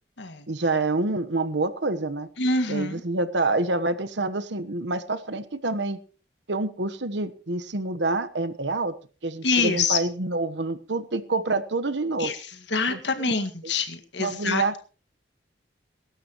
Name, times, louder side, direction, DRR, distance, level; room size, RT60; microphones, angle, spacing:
voice 1, 0.5-2.3 2.7-6.0 6.5-8.9 9.2-12.3 12.9-13.3 14.2-14.8, right 2 dB, 75° right, 12 dB, 1.2 m, -27 dB
voice 2, 2.4-3.0 9.4-10.0 12.2-12.4 12.7-14.6, left 4 dB, 75° left, 7 dB, 1.9 m, -25 dB
23.0 x 12.0 x 3.1 m, 0.37 s
head